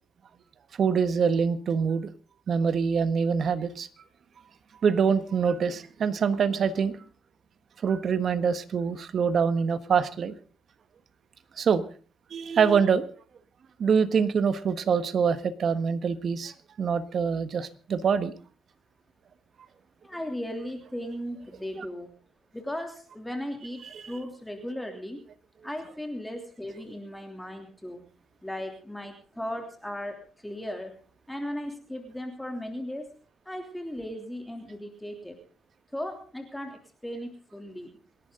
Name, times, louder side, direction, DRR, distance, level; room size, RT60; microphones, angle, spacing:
voice 1, 0.8-2.1 2.5-3.9 4.8-6.9 7.8-10.3 11.6-11.8 12.3-13.1 13.8-18.3 21.7-21.9 23.9-24.1, right 6 dB, 55° right, 12 dB, 1.5 m, -25 dB
voice 2, 20.0-22.1 22.5-25.2 25.6-28.0 28.4-30.2 30.4-30.9 31.3-33.1 33.4-35.4 35.9-37.9, left 1 dB, 5° left, 3 dB, 3.1 m, -36 dB
27.5 x 11.0 x 3.9 m, 0.40 s
cardioid pair, 90°, 0 cm